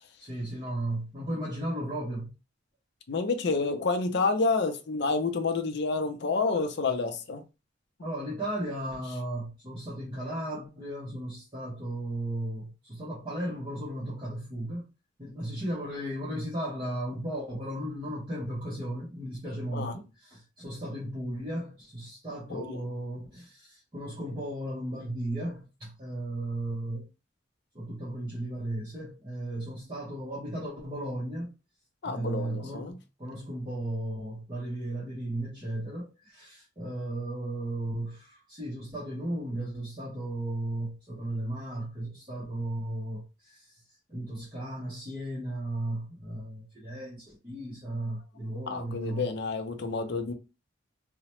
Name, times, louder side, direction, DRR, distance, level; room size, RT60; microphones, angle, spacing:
voice 1, 0.2-2.3 8.0-14.9 15.2-27.0 27.7-31.5 32.0-43.8 44.1-49.3, right 1 dB, 25° right, 0.9 m, -35 dB
voice 2, 3.1-7.4 19.7-19.9 22.5-22.8 32.0-33.0 48.7-50.3, left 3 dB, 55° left, 0.5 m, -29 dB
2.8 x 2.1 x 3.0 m
head